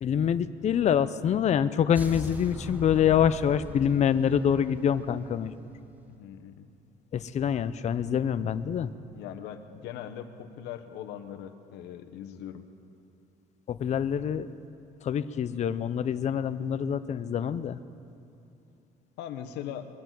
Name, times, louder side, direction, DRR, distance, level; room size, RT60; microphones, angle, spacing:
voice 1, 0.0-5.6 7.1-8.9 13.7-14.5 15.0-17.8, left 8 dB, 40° left, 12 dB, 0.6 m, -26 dB
sound 1, 1.9-6.0, equal, 10° right, 1.0 m, -41 dB
voice 2, 6.1-6.7 9.2-12.6 19.2-19.9, left 10 dB, 90° left, 8 dB, 1.1 m, -40 dB
22.0 x 8.1 x 7.5 m, 2.8 s
cardioid pair, 110°, 17 cm